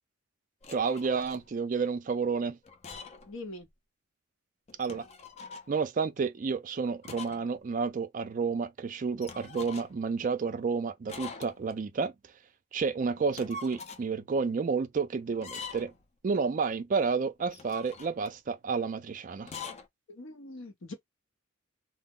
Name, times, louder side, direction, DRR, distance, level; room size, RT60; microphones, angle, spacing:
sound 1, 0.6-1.5 2.6-3.3 3.6-3.7 4.7-5.7 7.0-7.5 7.8-7.9 9.2-10.1 11.1-11.8 13.2-14.1 15.3-16.0 17.4-18.4 19.4-19.9, left 3 dB, 30° left, 0.4 m, -44 dB
voice 1, 0.7-2.6 4.8-5.1 5.7-12.1 12.7-15.9 16.2-19.5, right 5 dB, 40° right, 0.3 m, -30 dB
voice 2, 3.3-3.7 20.1-20.9, left 2 dB, 85° left, 1.0 m, -42 dB
2.1 x 2.1 x 3.6 m
head